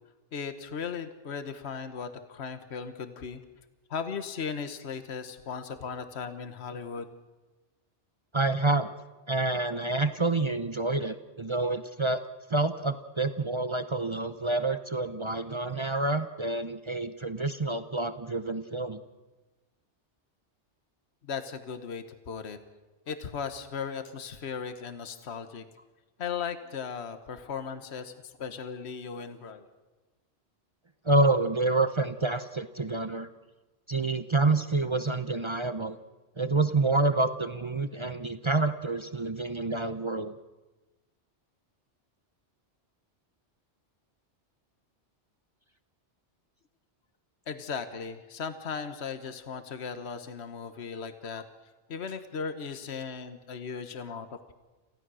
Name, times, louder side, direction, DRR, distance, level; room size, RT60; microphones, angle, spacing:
voice 1, 0.3-3.4 3.9-7.1 21.2-22.6 23.1-25.6 26.2-29.7 47.5-51.4 51.9-54.5, left 6 dB, 65° left, 9 dB, 1.4 m, -37 dB
voice 2, 8.3-8.9 9.3-12.2 12.5-19.0 31.0-33.3 33.9-36.0 36.4-40.4, right 2 dB, 30° right, 10 dB, 0.7 m, -28 dB
28.0 x 16.0 x 6.3 m, 1.2 s
omnidirectional pair, 1.2 m